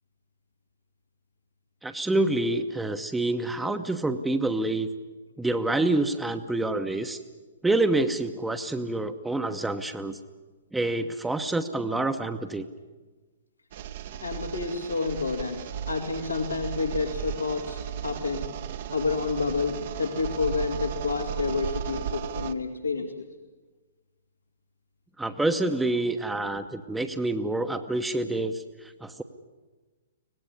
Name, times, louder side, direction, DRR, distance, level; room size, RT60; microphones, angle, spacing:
voice 1, 1.8-4.9 5.4-7.2 7.6-10.2 10.7-12.7 25.2-29.2, right 2 dB, 5° right, 6 dB, 1.1 m, -27 dB
sound 1, 13.7-22.5, right 9 dB, 45° right, 1.2 m, -35 dB
voice 2, 14.2-18.5 18.9-23.2, left 4 dB, 80° left, 2 dB, 2.6 m, -29 dB
25.0 x 18.5 x 9.8 m, 1.3 s
figure-of-eight pair, 115°, 0 cm